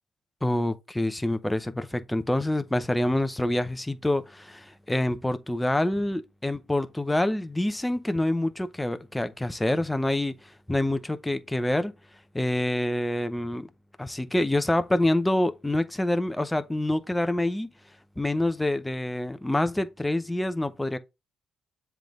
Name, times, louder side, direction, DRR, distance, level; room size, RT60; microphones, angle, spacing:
voice 1, 0.4-11.9 12.3-13.7 14.0-17.7 18.2-21.0, left 1 dB, 10° left, 0.7 m, -26 dB
7.4 x 3.4 x 3.7 m
cardioid pair, 90°, 0 cm